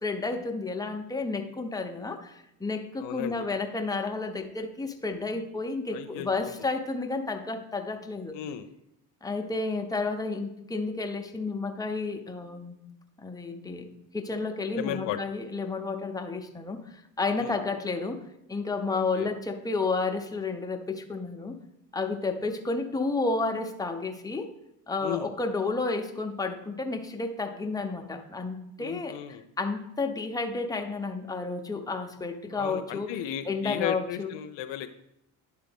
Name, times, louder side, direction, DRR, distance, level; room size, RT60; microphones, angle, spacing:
voice 1, 0.0-8.4 9.2-12.8 13.2-18.2 18.5-21.6 21.9-24.5 24.9-29.2 29.6-33.1 33.5-34.3, left 3 dB, 10° left, 4 dB, 0.8 m, -31 dB
voice 2, 3.0-3.4 5.9-6.7 8.3-8.7 14.8-15.2 17.4-17.6 19.2-19.3 25.0-25.3 28.8-29.4 32.5-35.0, left 10 dB, 65° left, 8 dB, 0.6 m, -35 dB
10.5 x 3.7 x 3.5 m, 0.83 s
hypercardioid pair, 60°, 47 cm